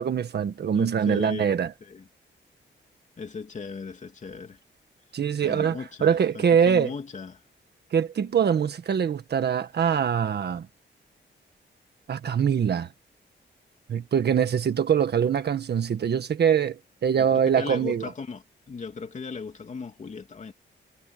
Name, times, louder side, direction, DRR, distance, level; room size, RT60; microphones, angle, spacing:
voice 1, 0.0-1.7 5.1-6.9 7.9-10.7 12.1-12.9 13.9-18.1, right 7 dB, 60° right, 1.6 m, -23 dB
voice 2, 0.7-2.1 3.2-4.6 5.4-7.4 17.1-20.5, left 5 dB, 40° left, 3.0 m, -37 dB
wide cardioid pair, 170°, 19 cm